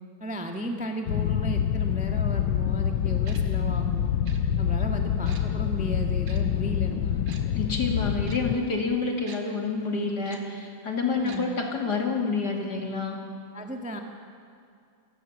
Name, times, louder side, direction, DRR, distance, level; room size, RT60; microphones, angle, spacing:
voice 1, 0.2-4.1 4.6-7.3 11.0-11.5 13.5-14.0, equal, 5° right, 3 dB, 1.3 m, -35 dB
sound 1, 1.1-8.6, left 9 dB, 75° left, 1.6 m, -26 dB
Tick-tock, 3.2-3.4 4.2-4.4 5.2-5.4 6.2-6.4 7.3-7.4 8.2-8.4 9.3-9.4 10.2-10.4 11.2-11.4 11.7-11.8, right 5 dB, 75° right, 2.8 m, -45 dB
voice 2, 7.5-13.2, left 4 dB, 50° left, 1 dB, 3.3 m, -28 dB
28.0 x 18.0 x 7.4 m, 2.4 s
omnidirectional pair, 2.2 m